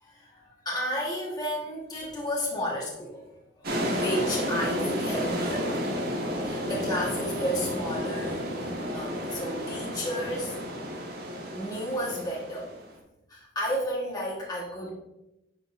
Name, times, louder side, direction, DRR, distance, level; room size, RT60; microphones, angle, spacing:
voice 1, 0.0-5.9 6.4-10.5 11.5-12.7 13.3-14.9, equal, 20° left, -4 dB, 1.3 m, -32 dB
sound 1, 3.6-12.9, equal, 55° right, 1.4 m, -31 dB
9.6 x 5.2 x 2.5 m, 0.90 s
head